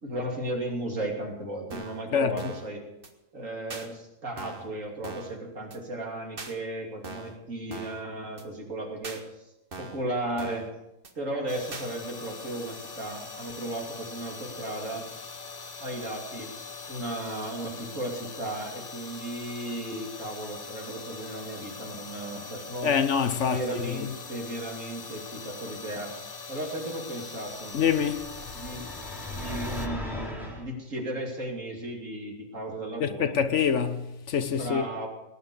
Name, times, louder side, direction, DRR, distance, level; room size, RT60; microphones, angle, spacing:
voice 1, 0.0-2.8 3.3-9.2 9.8-10.7 11.1-15.1 15.8-16.5 16.9-22.9 23.4-27.8 28.5-28.9 29.3-33.4 34.6-35.1, right 1 dB, 80° right, 3.4 m, -35 dB
sound 1, 1.7-2.0 2.4-2.7 3.0-3.1 3.7-3.9 4.4-4.7 5.0-5.4 5.7-5.8 6.4-6.5 7.0-7.4 7.7-8.0 8.4-8.5 9.0-9.2 9.7-10.0 10.4-10.7 11.0-11.1 11.7-11.9, right 3 dB, 45° right, 1.7 m, -41 dB
sound 2, 11.5-29.9, left 4 dB, 35° left, 1.1 m, -42 dB
voice 2, 22.8-24.1 27.7-28.3 33.0-34.9, left 7 dB, 65° left, 1.3 m, -26 dB
sound 3, 27.8-30.6, left 1 dB, ahead, 4.1 m, -37 dB
18.5 x 9.9 x 7.0 m
omnidirectional pair, 1.3 m